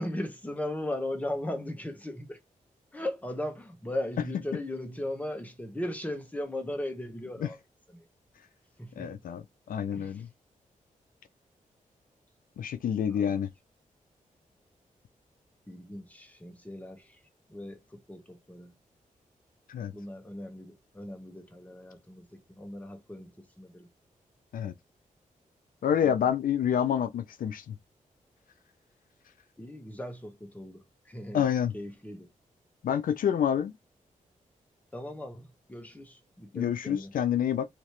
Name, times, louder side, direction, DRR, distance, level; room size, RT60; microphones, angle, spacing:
voice 1, 0.0-2.4 2.9-7.6 7.9-8.0 8.8-9.1 9.9-10.2 13.2-13.4 15.7-17.1 17.5-17.8 18.1-18.7 19.9-23.9 26.0-26.1 29.6-31.4 31.7-32.3 34.9-37.1, left 1 dB, 10° left, 1.1 m, -37 dB
voice 2, 9.0-9.4 9.7-10.3 12.6-13.5 19.7-19.9 24.5-24.7 25.8-27.7 31.3-31.7 32.8-33.7 36.5-37.7, left 9 dB, 85° left, 0.5 m, -27 dB
3.1 x 2.8 x 3.0 m
wide cardioid pair, 105°, 14 cm